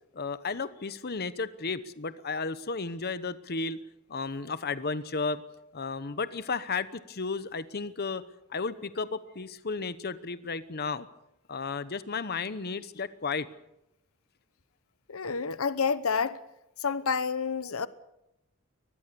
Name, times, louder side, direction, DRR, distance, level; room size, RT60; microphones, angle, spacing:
voice 1, 0.1-3.8 4.1-5.4 5.7-8.2 8.5-11.1 11.5-13.5, left 4 dB, 50° left, 1.0 m, -33 dB
voice 2, 15.1-16.4 16.8-17.9, left 5 dB, 80° left, 1.0 m, -29 dB
24.0 x 20.0 x 6.9 m
head